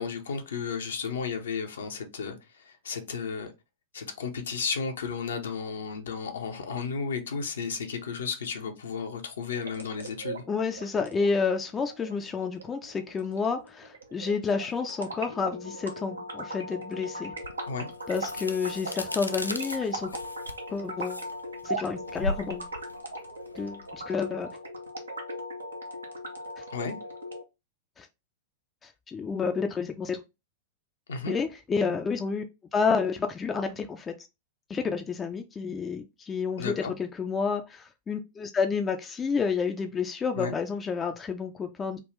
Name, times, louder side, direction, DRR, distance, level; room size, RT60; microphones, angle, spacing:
voice 1, 0.0-3.5 3.9-10.4 17.7-17.9 26.7-26.9 31.1-31.3 36.6-36.9 40.3-40.5, left 5 dB, 70° left, 0.8 m, -33 dB
sound 1, 9.4-27.4, right 1 dB, 80° right, 0.8 m, -39 dB
voice 2, 10.5-17.4 18.1-20.1 20.7-21.2 21.6-22.7 23.6-24.5 26.6-26.7 28.0-28.1 28.8-30.2 31.3-32.4 32.7-34.2 34.7-42.0, left 5 dB, 20° left, 0.4 m, -30 dB
sound 2, 17.4-24.2, left 2 dB, 90° left, 0.3 m, -37 dB
3.6 x 2.3 x 3.1 m
figure-of-eight pair, 95°, 0 cm